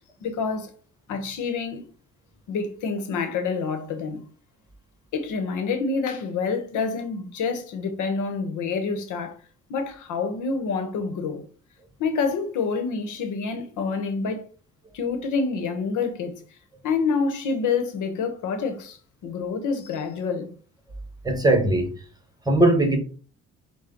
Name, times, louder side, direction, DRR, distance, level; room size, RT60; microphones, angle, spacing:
voice 1, 0.2-0.7 1.1-1.8 2.5-4.2 5.1-9.3 9.7-11.4 12.0-14.5 14.9-16.3 16.8-20.5, left 5 dB, 80° left, 1.0 m, -27 dB
voice 2, 21.2-21.9 22.5-23.0, right 1 dB, 15° right, 1.2 m, -19 dB
5.8 x 2.3 x 3.8 m
cardioid pair, 90°, 30 cm